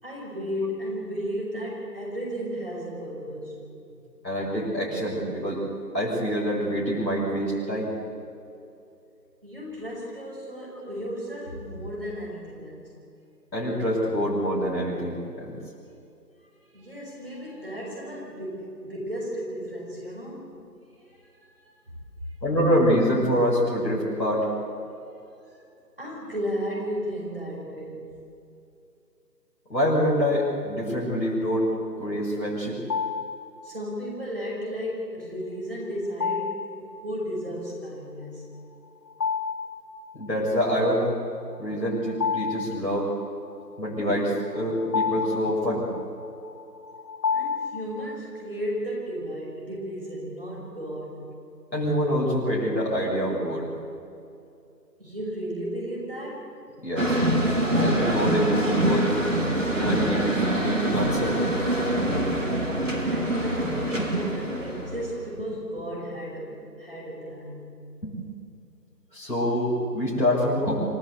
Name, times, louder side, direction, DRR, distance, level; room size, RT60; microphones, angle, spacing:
voice 1, 0.0-3.7 9.4-12.9 16.7-20.5 21.1-21.7 25.5-25.6 26.0-28.1 33.6-38.6 47.3-51.3 55.0-56.5 63.1-67.7, equal, 35° right, -4 dB, 5.5 m, -34 dB
voice 2, 4.2-5.6 5.9-8.0 13.5-15.6 22.4-24.5 29.7-31.7 32.0-32.8 40.1-41.1 41.6-43.1 43.8-45.9 51.7-53.7 56.8-57.2 57.8-59.1 59.7-61.4 63.9-64.1 68.0-68.2 69.1-70.8, equal, 90° left, -6 dB, 6.9 m, -25 dB
sound 1, 32.9-33.5 36.2-36.8 39.1-39.8 40.2-40.3 41.7-43.3 44.2-48.1, left 5 dB, 70° left, 1.9 m, -30 dB
sound 2, 57.0-65.3, right 1 dB, 50° right, 2.9 m, -25 dB
26.5 x 16.0 x 8.3 m, 2.6 s
figure-of-eight pair, 175°, 49 cm